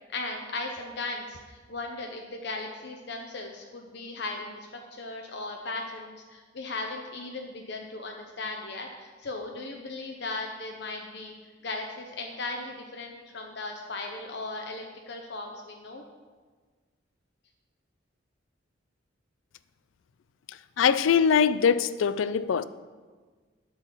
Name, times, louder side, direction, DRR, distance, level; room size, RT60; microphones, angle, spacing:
voice 1, 0.1-11.3 11.6-16.0, left 2 dB, 60° left, 0.8 m, -37 dB
voice 2, 20.5-22.6, left 7 dB, 80° left, 0.4 m, -23 dB
10.5 x 4.0 x 7.3 m
head